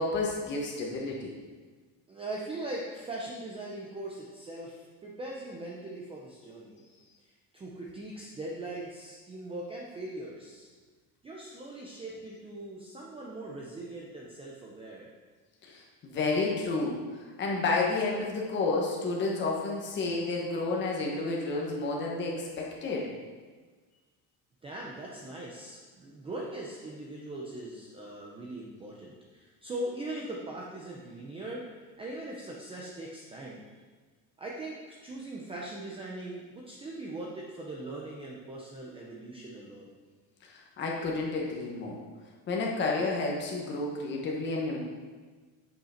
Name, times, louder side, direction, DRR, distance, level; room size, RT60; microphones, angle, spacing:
voice 1, 0.0-1.3 15.6-23.1 40.5-42.0 42.5-44.8, left 3 dB, 25° left, -2 dB, 1.1 m, -31 dB
voice 2, 2.1-6.8 7.2-10.7 11.2-15.1 24.6-33.8 34.4-39.9, right 1 dB, 15° right, -3 dB, 0.5 m, -40 dB
8.9 x 5.8 x 4.3 m, 1.4 s
cardioid pair, 175°, 44 cm